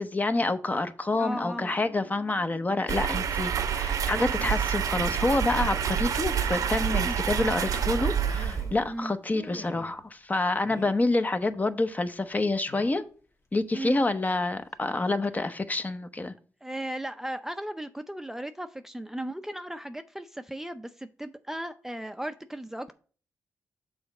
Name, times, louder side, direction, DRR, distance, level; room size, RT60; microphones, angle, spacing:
voice 1, 0.0-13.0 13.5-16.3, left 2 dB, 25° left, 0.8 m, -28 dB
sound 1, 1.1-7.3, left 6 dB, 85° left, 1.9 m, -52 dB
voice 2, 1.1-1.7 7.0-7.2 8.9-9.1 13.7-14.0 15.4-15.5 16.6-22.9, right 1 dB, 5° right, 0.5 m, -36 dB
sound 2, 2.9-8.9, right 8 dB, 75° right, 0.7 m, -28 dB
sound 3, 4.5-4.7 5.5-5.9 6.3-6.4 6.8-7.0 7.9-8.9 9.3-10.0 10.7-11.1 12.7-13.1 14.3-14.4 14.8-14.9, left 3 dB, 55° left, 1.5 m, -45 dB
6.3 x 3.9 x 5.9 m
cardioid pair, 60°, 6 cm